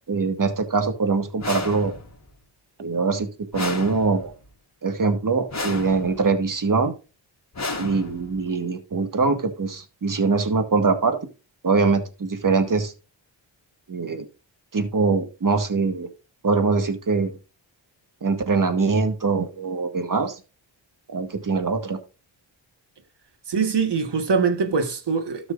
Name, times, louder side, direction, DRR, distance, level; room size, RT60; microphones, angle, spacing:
voice 1, 0.1-1.9 2.8-4.3 4.8-6.9 7.8-11.2 11.6-12.9 13.9-14.3 14.7-16.1 16.4-17.4 18.2-20.4 21.1-22.0, right 4 dB, 45° right, 1.8 m, -23 dB
sound 1, 1.4-2.3 3.5-4.5 5.5-6.3 7.5-8.5, left 3 dB, 35° left, 2.5 m, -32 dB
voice 2, 23.5-25.5, right 5 dB, 60° right, 1.6 m, -23 dB
13.0 x 6.1 x 2.6 m
cardioid pair, 55°, 46 cm